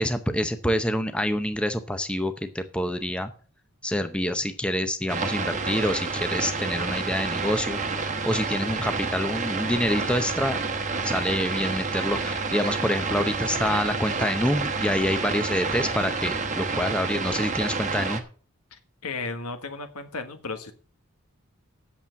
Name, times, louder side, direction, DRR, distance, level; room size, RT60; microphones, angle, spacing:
voice 1, 0.0-3.3 3.8-10.6 11.0-18.2, left 1 dB, 5° left, 8 dB, 0.6 m, -27 dB
sound 1, 5.1-18.2, right 4 dB, 35° right, 1.1 m, -29 dB
voice 2, 18.7-20.7, left 3 dB, 85° left, 8 dB, 1.5 m, -35 dB
8.6 x 7.3 x 7.0 m, 0.42 s
head